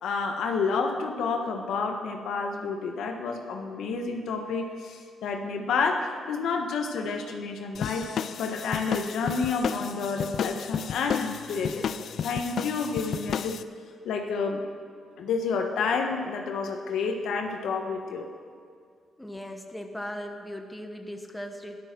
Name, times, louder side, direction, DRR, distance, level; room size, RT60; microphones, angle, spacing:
voice 1, 0.0-11.9 12.2-13.6 14.0-14.6 15.2-18.3, left 4 dB, 80° left, 3 dB, 1.4 m, -29 dB
sound 1, 7.7-13.6, left 8 dB, 65° left, 0.4 m, -33 dB
voice 2, 19.2-21.8, equal, 5° left, 4 dB, 1.2 m, -38 dB
13.5 x 12.0 x 6.2 m, 2.1 s
cardioid pair, 95°, 0 cm